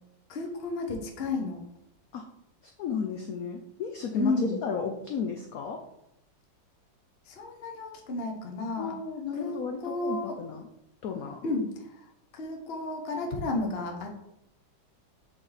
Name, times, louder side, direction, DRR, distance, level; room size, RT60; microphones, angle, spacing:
voice 1, 0.3-1.6 4.1-4.6 7.3-9.0 9.4-10.4 11.4-12.0 12.3-14.2, left 2 dB, 45° left, 2 dB, 0.8 m, -32 dB
voice 2, 2.8-4.3 4.6-5.8 8.8-10.6 11.0-11.4, left 6 dB, 85° left, 3 dB, 0.7 m, -34 dB
7.1 x 4.1 x 3.4 m, 0.82 s
omnidirectional pair, 2.2 m